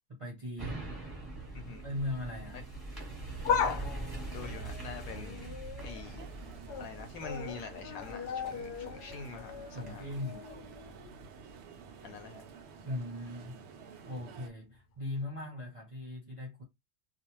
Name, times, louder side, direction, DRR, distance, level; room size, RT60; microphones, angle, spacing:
voice 1, 0.1-1.0 1.8-2.7 9.7-10.5 12.8-13.6 14.0-16.6, left 1 dB, 35° right, 0.5 m, -39 dB
sound 1, 0.6-12.0 12.5-12.6, right 2 dB, 15° right, 0.9 m, -44 dB
sound 2, 3.2-6.1 6.5-6.9 7.2-11.1 11.5-11.6 12.6-12.7, left 7 dB, 85° left, 1.2 m, -37 dB
voice 2, 4.3-6.2 6.8-10.1 12.0-12.4, left 5 dB, 70° left, 1.0 m, -45 dB
sound 3, 6.0-14.5, right 6 dB, 80° right, 0.6 m, -51 dB
2.4 x 2.3 x 3.0 m
omnidirectional pair, 1.7 m